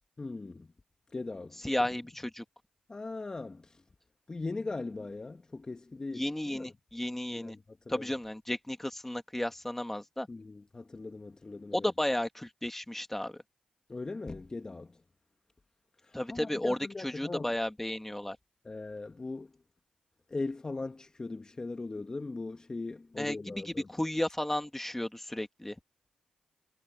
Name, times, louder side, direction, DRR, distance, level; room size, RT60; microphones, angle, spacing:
voice 1, 0.2-0.7 1.1-1.6 2.9-3.6 4.3-6.2 6.5-6.7 7.3-7.5 7.9-8.0 10.3-11.9 13.9-14.9 16.1-17.5 18.6-19.5 20.3-23.9, left 3 dB, 30° left, 1.5 m, -39 dB
voice 2, 1.6-2.4 6.1-7.6 7.9-10.3 11.7-13.4 16.1-18.4 23.2-25.8, left 1 dB, 10° left, 2.3 m, -33 dB
cardioid pair, 55°, 2 cm